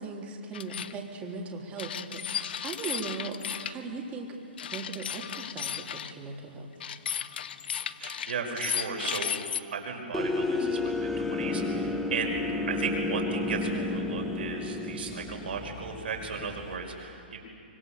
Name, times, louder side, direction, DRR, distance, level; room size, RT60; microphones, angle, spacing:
voice 1, 0.0-4.3 4.7-6.7 9.0-9.1, right 4 dB, 25° right, 0 dB, 3.7 m, -39 dB
sound 1, 0.5-0.9 1.8-3.7 4.6-6.1 6.8-9.6, left 9 dB, 65° left, 1.0 m, -34 dB
voice 2, 8.0-9.4 9.7-12.4 12.7-17.4, right 5 dB, 70° right, 2 dB, 5.5 m, -35 dB
sound 2, 10.1-16.7, left 2 dB, 5° left, 1.9 m, -31 dB
25.0 x 23.0 x 6.9 m, 2.5 s
hypercardioid pair, 130°, 6 cm